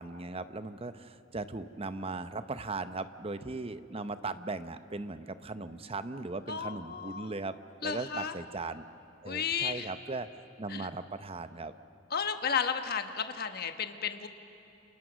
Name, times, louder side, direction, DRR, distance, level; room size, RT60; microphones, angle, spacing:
voice 1, 0.0-7.6 7.8-8.8 9.2-10.3 10.6-11.7, right 3 dB, 30° right, 11 dB, 0.8 m, -38 dB
voice 2, 6.5-7.3 7.8-8.3 9.2-9.9 10.7-10.9 12.1-14.3, left 6 dB, 50° left, 7 dB, 1.3 m, -33 dB
29.0 x 28.0 x 6.3 m, 2.7 s
head